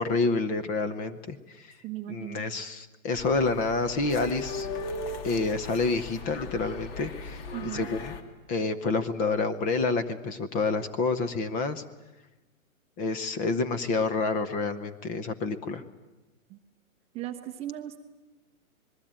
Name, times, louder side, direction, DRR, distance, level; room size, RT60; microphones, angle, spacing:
voice 1, 0.0-1.7 2.1-4.7 5.2-7.4 7.7-8.1 8.5-11.8 13.0-15.8, left 3 dB, 20° left, 11 dB, 0.9 m, -28 dB
voice 2, 1.8-2.4 7.5-7.9 16.5-16.6 17.1-18.0, right 13 dB, 15° right, 4 dB, 0.8 m, -37 dB
sound 1, 3.2-8.2, left 3 dB, 45° left, 2.4 m, -38 dB
26.5 x 21.0 x 8.9 m, 1.1 s
hypercardioid pair, 150°, 42 cm